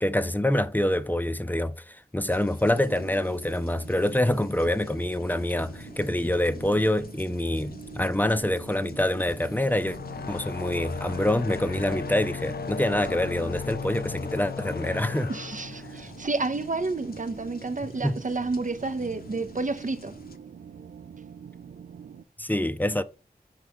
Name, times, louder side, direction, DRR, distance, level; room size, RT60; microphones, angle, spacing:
voice 1, 0.0-10.0 10.3-15.3 18.0-18.2 22.4-23.0, left 1 dB, 10° left, 0.5 m, -26 dB
sound 1, 2.3-20.4, left 2 dB, 65° left, 0.8 m, -47 dB
sound 2, 2.8-22.2, right 7 dB, 85° right, 0.4 m, -46 dB
sound 3, 9.7-17.0, left 5 dB, 80° left, 0.4 m, -36 dB
voice 2, 15.3-20.2, right 3 dB, 55° right, 0.7 m, -30 dB
5.6 x 4.8 x 3.6 m
wide cardioid pair, 55°, 16 cm